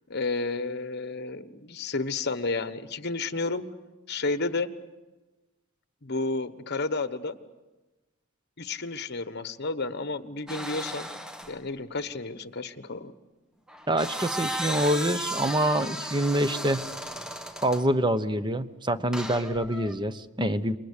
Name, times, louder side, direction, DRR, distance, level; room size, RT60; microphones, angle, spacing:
voice 1, 0.1-3.7 4.1-4.7 6.0-7.4 8.6-11.1 11.5-13.1, left 3 dB, 50° left, 11 dB, 1.2 m, -31 dB
sound 1, 10.5-11.6 13.7-17.9 19.1-19.9, equal, 5° right, 1.6 m, -35 dB
voice 2, 13.9-16.9 17.6-20.8, right 1 dB, 20° right, 12 dB, 1.0 m, -26 dB
28.0 x 22.5 x 6.7 m, 1.1 s
head